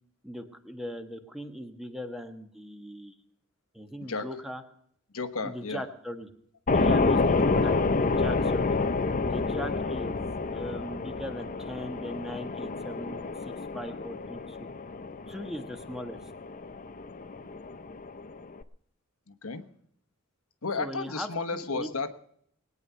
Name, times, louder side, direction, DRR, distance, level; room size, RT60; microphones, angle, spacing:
voice 1, 0.2-3.2 3.7-4.6 5.4-6.3 6.7-8.8 9.2-14.7 15.3-16.3 20.8-21.9, equal, ahead, 6 dB, 1.4 m, -39 dB
voice 2, 5.1-5.8 19.3-19.7 20.6-22.1, left 4 dB, 80° left, 10 dB, 1.2 m, -33 dB
sound 1, 6.7-18.6, left 3 dB, 40° left, 0.7 m, -29 dB
20.0 x 9.7 x 5.6 m, 0.68 s
head